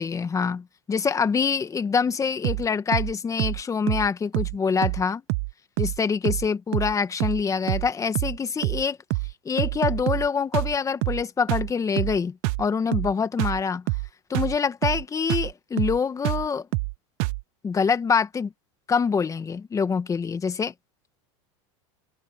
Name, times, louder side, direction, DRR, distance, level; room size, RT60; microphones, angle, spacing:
voice 1, 0.0-5.2 5.8-9.0 9.4-13.8 14.3-16.7 17.6-18.5 18.9-20.7, left 5 dB, 20° left, 1.7 m, -25 dB
sound 1, 2.4-2.7 2.9-3.1 3.4-3.6 3.9-4.1 4.3-4.6 4.8-5.0 5.3-5.5 5.8-6.0 6.2-6.5 6.7-6.9 7.2-7.4 7.7-7.9 8.1-8.4 8.6-8.8 9.1-9.3 9.6-10.3 10.5-10.7 11.0-11.2 11.5-11.7 12.0-12.2 12.4-12.7 12.9-13.1 13.4-13.6 13.9-14.1 14.3-14.6 14.8-15.0 15.3-15.5 15.8-16.0 16.2-16.5 16.7-16.9 17.2-17.4, right 26 dB, 60° right, 0.7 m, -26 dB
supercardioid pair, 120°, 16 cm